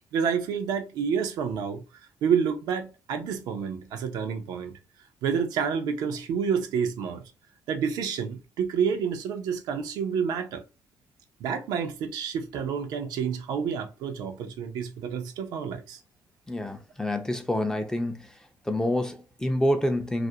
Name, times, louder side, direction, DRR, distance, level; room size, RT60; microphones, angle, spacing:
voice 1, 0.1-1.8 2.2-4.7 5.2-7.2 7.7-10.6 11.4-16.0, right 7 dB, 80° right, 0.5 m, -29 dB
voice 2, 16.5-18.2 18.7-20.3, left 1 dB, 10° left, 0.4 m, -27 dB
2.4 x 2.0 x 2.7 m
cardioid pair, 100°, 7 cm